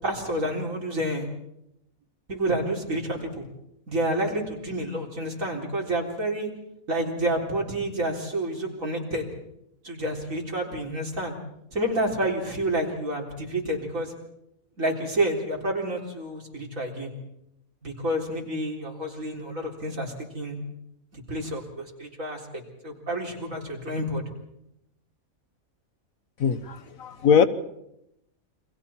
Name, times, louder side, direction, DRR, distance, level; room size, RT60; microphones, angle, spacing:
voice 1, 0.0-1.3 2.3-3.5 3.9-6.5 6.9-9.3 9.8-11.3 11.7-14.1 14.8-17.1 17.8-20.6 21.1-24.2, right 1 dB, 70° right, 0 dB, 4.4 m, -29 dB
voice 2, 27.0-27.5, left 7 dB, 80° left, 11 dB, 1.6 m, -19 dB
29.5 x 24.0 x 4.4 m, 0.80 s
omnidirectional pair, 1.4 m